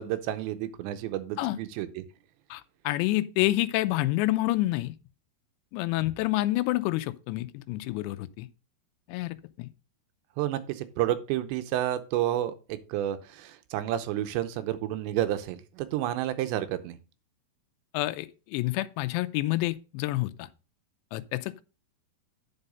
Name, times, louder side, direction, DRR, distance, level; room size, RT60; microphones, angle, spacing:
voice 1, 0.0-2.0 10.4-17.0, right 12 dB, 85° right, 3.0 m, -30 dB
voice 2, 2.5-4.9 5.7-8.5 9.1-9.7 17.9-20.5 21.1-21.6, left 17 dB, 85° left, 2.8 m, -28 dB
9.8 x 5.5 x 5.2 m
omnidirectional pair, 5.1 m